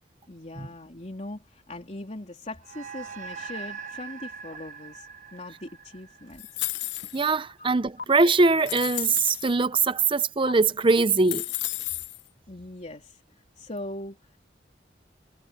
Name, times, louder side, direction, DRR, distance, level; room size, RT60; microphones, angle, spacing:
voice 1, 0.3-6.6 7.6-7.7 12.5-14.4, left 1 dB, 40° left, 3.4 m, -40 dB
sound 1, 2.6-7.3, right 6 dB, 45° right, 1.2 m, -42 dB
sound 2, 6.4-7.4 8.0-8.1 8.6-9.5 10.5-10.6 11.0-12.2, left 14 dB, 85° left, 1.1 m, -33 dB
voice 2, 7.1-11.4, right 3 dB, 30° right, 0.7 m, -22 dB
head